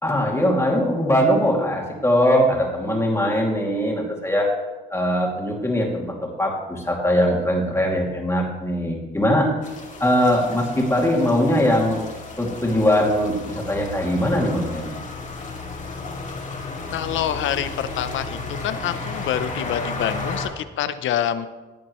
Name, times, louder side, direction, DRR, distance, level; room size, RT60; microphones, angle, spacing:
voice 1, 0.0-4.5 4.9-9.6 10.0-12.0 12.4-14.9, equal, 15° left, -1 dB, 2.5 m, -21 dB
sound 1, 9.6-20.5, left 3 dB, 40° left, 2.2 m, -33 dB
voice 2, 16.9-21.5, left 10 dB, 75° left, 12 dB, 0.7 m, -26 dB
15.0 x 8.6 x 3.1 m, 1.2 s
cardioid pair, 90°, 20 cm